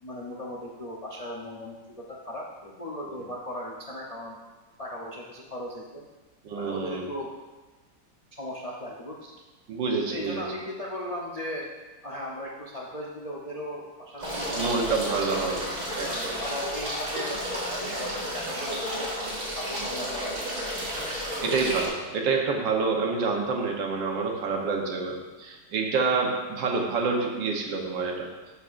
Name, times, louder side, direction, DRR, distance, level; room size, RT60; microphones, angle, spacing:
voice 1, 0.0-4.4 4.8-6.1 6.5-7.3 8.3-9.3 10.1-11.7 12.0-14.9 15.2-15.6 16.4-19.1 19.4-20.6, equal, 45° left, -3 dB, 0.4 m, -37 dB
voice 2, 6.4-7.1 9.7-10.4 14.5-15.6 16.0-16.4 21.1-28.3, right 4 dB, 75° right, 1 dB, 1.7 m, -28 dB
sound 1, 14.2-21.9, equal, 55° right, 2.9 m, -32 dB
13.0 x 5.7 x 2.5 m, 1.2 s
omnidirectional pair, 2.0 m